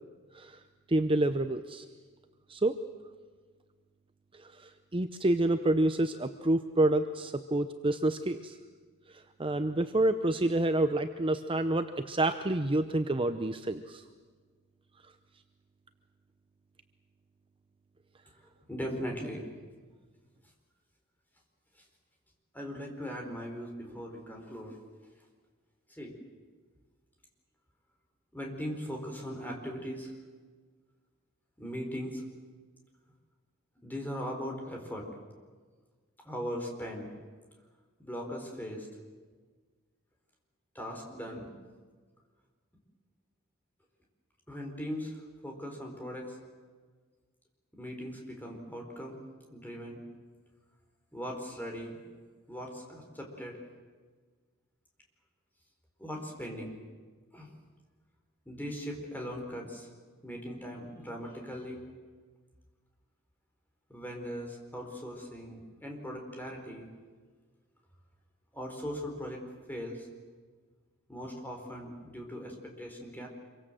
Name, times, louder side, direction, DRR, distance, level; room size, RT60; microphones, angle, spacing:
voice 1, 0.9-1.8 2.5-2.7 4.3-8.6 9.1-14.0, right 1 dB, 25° right, 8 dB, 0.7 m, -28 dB
voice 2, 18.7-19.5 22.5-24.8 25.9-26.1 28.3-30.1 31.6-32.2 33.8-35.1 36.2-37.1 38.0-38.9 40.7-41.5 44.5-46.4 47.7-49.2 49.5-50.0 51.1-52.0 52.5-53.6 56.0-56.8 57.3-57.5 58.5-59.9 60.2-61.8 63.9-66.9 68.5-69.4 69.7-70.1 71.1-73.3, equal, 10° left, 1 dB, 4.6 m, -39 dB
26.5 x 24.0 x 7.7 m, 1.5 s
head